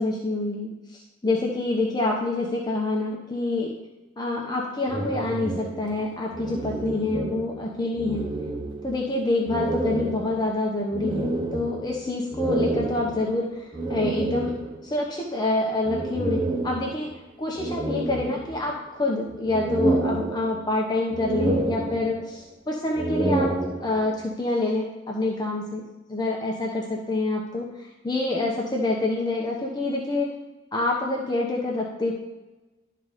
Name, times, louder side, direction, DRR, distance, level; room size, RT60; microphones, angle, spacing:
voice 1, 0.0-3.7 4.2-8.3 8.8-14.5 14.8-17.1 17.4-23.5 23.8-25.8 26.1-30.3 30.7-32.1, left 2 dB, 20° left, -2 dB, 0.8 m, -27 dB
sound 1, 4.9-7.7 7.9-9.1 9.5-14.9 15.9-17.2 17.6-18.9 19.3-20.8 21.1-22.4 22.9-24.2, right 2 dB, 25° right, 0.8 m, -29 dB
11.5 x 3.9 x 4.9 m, 1.1 s
head